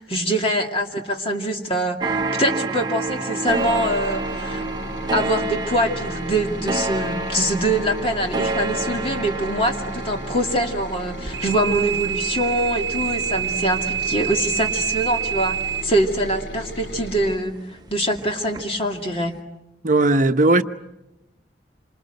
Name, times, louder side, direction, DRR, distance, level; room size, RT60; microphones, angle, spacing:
voice 1, 0.0-4.6 5.1-15.6 15.8-19.3, right 1 dB, 30° left, 2.5 m, -24 dB
sound 1, 2.0-17.1 17.5-18.9 19.1-19.2, right 2 dB, 25° right, 1.0 m, -30 dB
sound 2, 3.5-17.4, left 1 dB, 90° left, 2.7 m, -36 dB
sound 3, 11.2-15.8, right 9 dB, 75° right, 1.0 m, -26 dB
voice 2, 19.8-20.6, right 2 dB, 45° right, 1.0 m, -17 dB
27.5 x 26.0 x 8.0 m
head